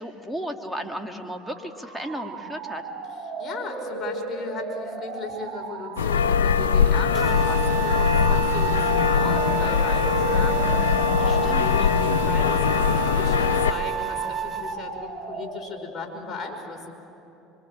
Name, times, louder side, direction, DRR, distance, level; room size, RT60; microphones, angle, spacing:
voice 1, 0.0-2.9 11.2-11.9, equal, ahead, 3 dB, 2.2 m, -34 dB
sound 1, 1.4-16.0, right 3 dB, 70° right, 3.7 m, -37 dB
voice 2, 3.4-16.9, left 4 dB, 30° left, 1 dB, 5.2 m, -36 dB
sound 2, 6.0-13.7, left 6 dB, 90° left, 0.7 m, -21 dB
sound 3, 7.1-14.8, right 7 dB, 40° right, 1.1 m, -30 dB
25.0 x 24.5 x 7.5 m, 2.9 s
hypercardioid pair, 75°, 0 cm